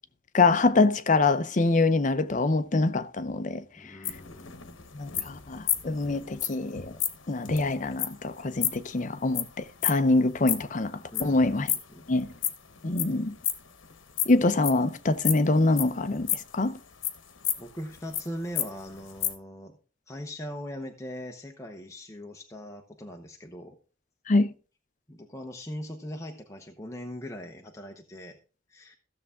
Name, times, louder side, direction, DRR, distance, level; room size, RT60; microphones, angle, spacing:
voice 1, 0.3-3.6 4.9-7.0 7.3-11.7 12.1-12.3 12.8-13.4 14.3-16.8 24.3-24.5, left 3 dB, 40° left, 0.6 m, -25 dB
voice 2, 3.8-4.8 11.1-12.3 13.1-13.2 17.6-19.8 20.1-23.8 25.1-28.4 28.7-29.0, equal, 15° left, 0.9 m, -40 dB
sound 1, 4.0-10.8 11.1-13.1 13.4-14.8 15.2-16.6 17.0-18.2 18.6-18.7 18.9-19.3, left 11 dB, 80° left, 1.1 m, -31 dB
15.0 x 6.9 x 3.6 m
head